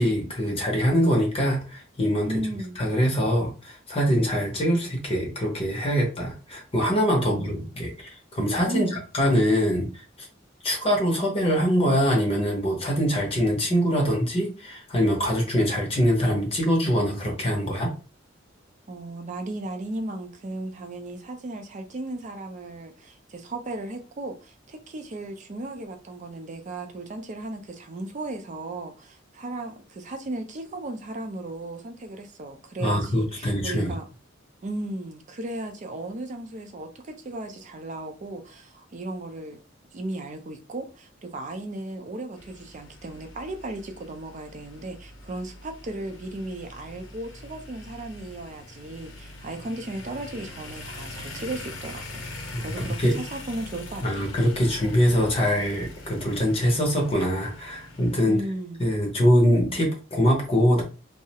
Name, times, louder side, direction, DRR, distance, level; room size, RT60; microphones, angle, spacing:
voice 1, 0.0-2.4 2.8-10.3 10.6-17.9 32.8-33.9 52.5-53.1 54.0-58.4 58.8-60.8, equal, 30° left, 0.6 m, -23 dB
voice 2, 2.2-2.8 7.2-7.7 8.7-9.0 18.9-34.0 34.6-39.6 39.9-52.2 52.6-54.2 58.2-58.9, right 2 dB, 40° right, 0.4 m, -35 dB
sound 1, 42.4-58.2, left 2 dB, 85° left, 0.6 m, -42 dB
2.3 x 2.0 x 2.8 m
head